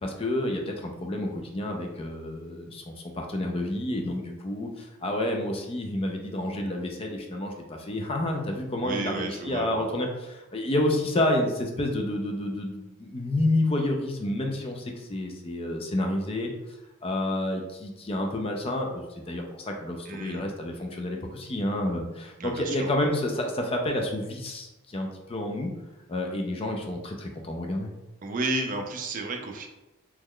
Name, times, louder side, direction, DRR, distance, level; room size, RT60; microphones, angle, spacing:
voice 1, 0.0-16.5 17.0-25.7 26.1-27.9, left 1 dB, 25° left, 2 dB, 0.4 m, -29 dB
voice 2, 8.8-9.8 20.1-20.4 22.4-22.9 28.2-29.7, right 2 dB, 40° right, 3 dB, 0.4 m, -32 dB
3.0 x 2.2 x 3.6 m, 0.97 s
head